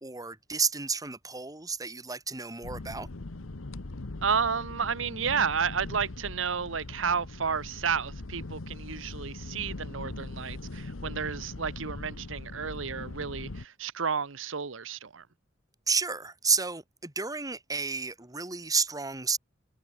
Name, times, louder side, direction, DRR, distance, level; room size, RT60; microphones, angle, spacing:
voice 1, 0.0-3.1 15.9-19.4, right 5 dB, 20° right, 2.0 m, -31 dB
sound 1, 2.6-13.7, left 2 dB, 85° left, 1.1 m, -41 dB
voice 2, 4.2-15.2, right 6 dB, 70° right, 1.0 m, -31 dB
head